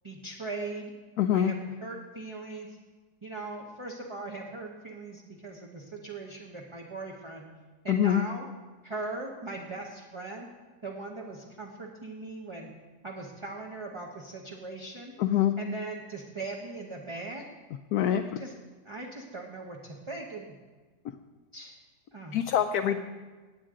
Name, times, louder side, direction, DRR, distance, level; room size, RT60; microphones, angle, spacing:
voice 1, 0.0-0.9 1.3-2.7 3.2-7.4 7.8-8.5 8.8-10.5 10.8-12.7 13.0-15.1 15.6-17.4 18.2-18.5 18.8-20.5 21.5-21.8 22.1-22.4 22.8-23.0, right 3 dB, 20° right, -1 dB, 0.9 m, -39 dB
voice 2, 1.2-1.5 7.9-8.2 15.2-15.5 17.9-18.4 22.3-23.0, left 10 dB, 75° left, 6 dB, 1.0 m, -24 dB
18.0 x 8.9 x 3.8 m, 1.3 s
omnidirectional pair, 1.8 m